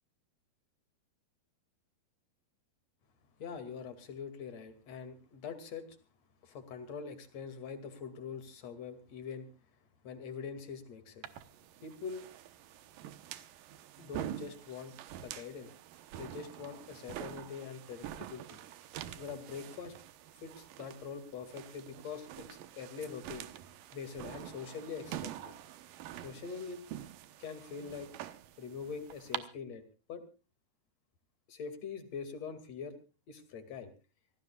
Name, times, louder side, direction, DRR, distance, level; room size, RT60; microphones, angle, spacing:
voice 1, 3.4-5.9 6.4-9.5 10.0-11.3 11.8-12.2 14.0-14.9 15.2-15.7 16.1-18.6 19.2-19.9 20.4-23.5 23.9-25.5 26.2-26.8 27.4-28.1 28.6-29.8 30.1-30.2 31.5-33.0 33.3-33.9, left 6 dB, 50° left, 10 dB, 3.2 m, -43 dB
sound 1, 11.2-29.4, right 12 dB, 70° right, 2.6 m, -46 dB
27.0 x 17.0 x 2.4 m, 0.33 s
omnidirectional pair, 4.3 m